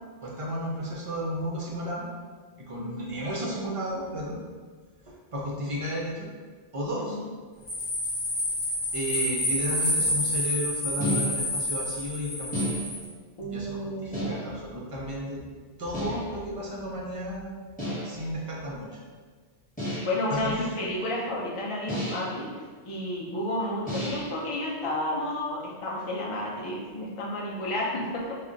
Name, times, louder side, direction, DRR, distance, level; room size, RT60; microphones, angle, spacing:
voice 1, 0.2-2.0 2.7-4.4 5.3-6.3 6.7-7.2 8.9-12.8 13.4-15.4 15.8-17.7 18.0-18.9 20.4-20.7 24.0-24.2, equal, 50° right, -4 dB, 0.4 m, -33 dB
voice 2, 2.8-3.2 7.0-7.3 13.4-14.5 20.0-28.3, left 1 dB, 45° left, -4 dB, 0.4 m, -31 dB
sound 1, 7.7-13.1, left 1 dB, 75° left, 1.0 m, -29 dB
sound 2, 11.0-11.6 12.5-13.2 14.1-14.7 15.9-16.4 17.8-18.3 19.8-20.3 21.9-22.4 23.9-24.4, equal, 10° left, 0.8 m, -32 dB
2.4 x 2.1 x 3.8 m, 1.5 s
omnidirectional pair, 1.2 m